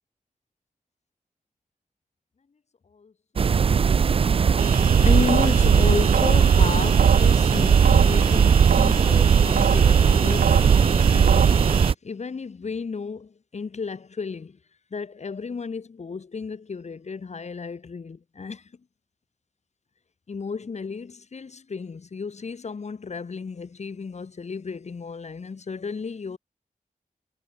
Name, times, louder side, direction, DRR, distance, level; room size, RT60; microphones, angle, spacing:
voice 1, 2.9-3.7 4.9-14.6 14.9-18.7 20.3-26.4, left 5 dB, 55° left, 2.8 m, -33 dB
sound 1, 3.4-11.9, right 6 dB, 45° right, 0.4 m, -20 dB
sound 2, 4.6-11.9, right 7 dB, 85° right, 0.7 m, -21 dB
wide cardioid pair, 120°, 14 cm